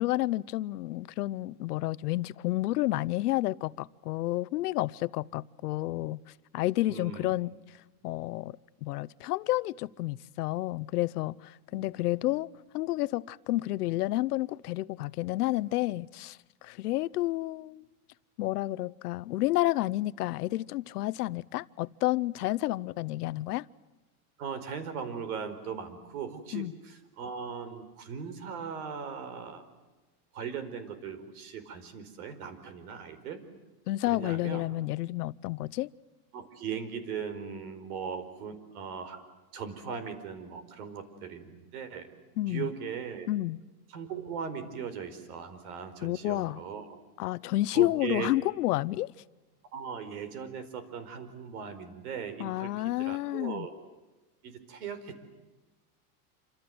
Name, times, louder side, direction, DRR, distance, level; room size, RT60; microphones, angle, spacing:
voice 1, 0.0-6.2 6.5-7.5 8.0-12.5 12.7-17.8 18.4-23.7 26.5-26.7 33.9-35.9 42.4-42.7 43.3-43.6 46.0-46.6 47.2-49.1 52.4-53.7, left 17 dB, 85° left, 0.8 m, -30 dB
voice 2, 6.9-7.3 11.7-11.9 24.4-29.6 30.3-33.4 34.0-34.6 36.3-39.2 39.5-42.1 42.5-43.3 43.9-47.0 47.7-48.3 49.7-52.7 53.0-53.7 54.4-55.2, right 6 dB, 75° right, 4.8 m, -39 dB
27.5 x 26.5 x 7.9 m
supercardioid pair, 160°, 45 cm